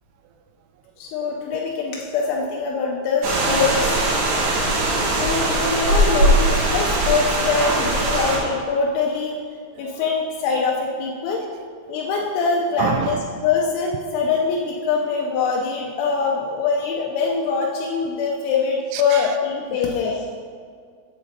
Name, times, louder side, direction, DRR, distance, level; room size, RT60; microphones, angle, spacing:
voice 1, 1.0-4.0 5.0-9.3 9.8-11.4 11.9-20.2, left 5 dB, 90° left, -1 dB, 2.5 m, -23 dB
sound 1, 3.2-8.4, right 1 dB, 65° right, 3.0 m, -20 dB
voice 2, 4.2-4.7 8.1-8.2 9.8-10.0 11.9-12.0 12.8-13.2 18.9-19.3 19.7-19.8, right 10 dB, 85° right, 7 dB, 3.2 m, -30 dB
8.3 x 3.8 x 6.5 m, 2.1 s
omnidirectional pair, 6.0 m